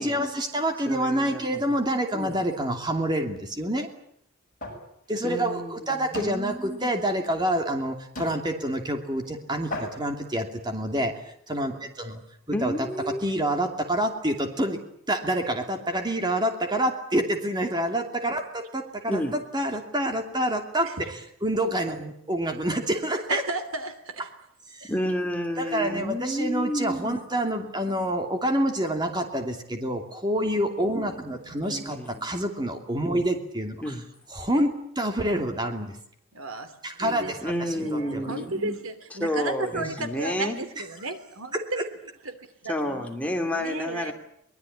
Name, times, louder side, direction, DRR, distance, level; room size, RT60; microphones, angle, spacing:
voice 1, 0.0-3.9 5.1-11.1 11.5-12.2 12.5-12.9 13.2-14.8 15.1-19.2 19.5-23.4 24.7-24.9 25.6-33.9 34.3-36.0 36.8-38.3 39.7-39.9 41.5-41.8, right 1 dB, 20° right, 5 dB, 2.8 m, -27 dB
voice 2, 0.9-1.6 2.1-2.4 5.2-6.9 12.5-13.2 19.1-19.3 24.9-27.2 27.8-28.1 31.6-32.2 33.8-34.0 37.4-38.8 39.2-40.6 42.7-44.1, equal, 5° left, 3 dB, 2.7 m, -30 dB
sound 1, 4.6-4.9 5.3-5.5 6.1-6.4 7.3-7.4 8.2-8.4 9.2-9.3 9.7-10.1, left 1 dB, 40° left, 7.8 m, -36 dB
voice 3, 23.3-24.3 36.3-41.8 42.2-42.3 42.6-43.1 43.4-44.1, right 2 dB, 75° right, 9 dB, 3.1 m, -34 dB
23.5 x 21.0 x 10.0 m, 0.70 s
head